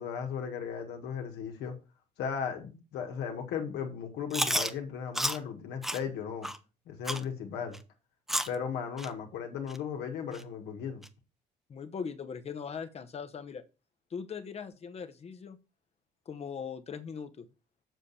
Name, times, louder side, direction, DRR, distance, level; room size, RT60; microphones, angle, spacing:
voice 1, 0.0-1.8 2.2-6.5 6.9-7.8 8.5-11.0, left 7 dB, 80° left, 1.9 m, -36 dB
Chewing mastication, 4.3-4.7 5.2-5.4 5.8-6.0 6.4-6.6 7.1-7.2 7.7-7.8 8.3-8.6 9.0-9.1 9.7-9.8 10.3-10.4 11.0-11.1, equal, ahead, 0.7 m, -30 dB
voice 2, 11.7-13.6 14.1-15.6 16.3-17.5, left 6 dB, 40° left, 1.0 m, -40 dB
7.4 x 7.0 x 4.3 m
cardioid pair, 110°, 17 cm